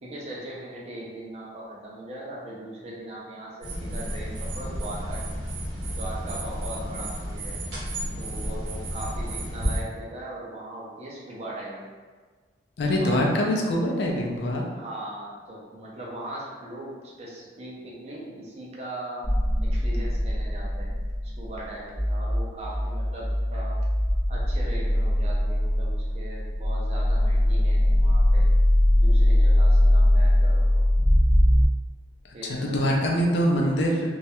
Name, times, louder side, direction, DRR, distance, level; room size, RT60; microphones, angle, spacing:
voice 1, 0.0-5.2 5.9-7.6 8.2-11.9 13.0-13.3 14.7-19.3 19.6-20.9 21.2-23.8 24.3-28.5 28.9-30.8 32.3-32.9, right 1 dB, 35° right, -4 dB, 0.5 m, -39 dB
sound 1, 3.6-9.8, equal, 70° right, 0.8 m, -32 dB
voice 2, 12.8-14.6 32.3-34.1, equal, 70° left, 0 dB, 0.4 m, -24 dB
sound 2, 19.2-31.7, left 1 dB, 30° left, 0.7 m, -21 dB
2.3 x 2.0 x 2.8 m, 1.5 s
head